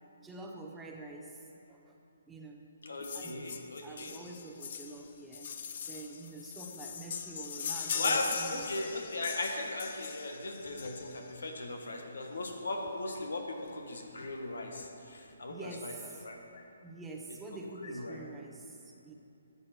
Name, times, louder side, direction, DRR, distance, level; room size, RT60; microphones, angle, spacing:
voice 1, 0.2-2.0 2.3-2.7 3.1-3.6 3.8-5.5 5.9-8.7 15.5-16.3 16.8-19.1, right 2 dB, 10° right, 0 dB, 0.9 m, -46 dB
voice 2, 2.8-4.2 7.9-15.6 15.8-15.9 16.2-16.6 17.8-18.2, left 2 dB, 75° left, 3 dB, 1.5 m, -37 dB
sound 1, 3.0-11.4 12.4-12.5 12.9-13.0 13.2-13.3 13.7-14.3 14.8-14.9, left 7 dB, 50° left, 0.6 m, -40 dB
12.5 x 8.4 x 4.5 m, 2.7 s
figure-of-eight pair, 140°, 0 cm